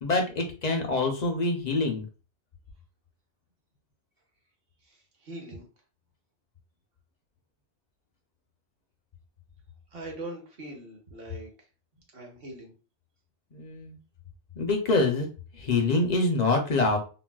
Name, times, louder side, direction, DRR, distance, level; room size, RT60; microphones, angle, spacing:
voice 1, 0.0-2.0 13.5-14.0 14.6-15.3 15.6-17.0, left 3 dB, 50° left, 3 dB, 0.5 m, -25 dB
voice 2, 4.8-5.6 9.9-11.5 12.1-12.7, right 2 dB, 55° right, 1 dB, 1.1 m, -41 dB
3.9 x 2.1 x 2.3 m, 0.35 s
omnidirectional pair, 1.2 m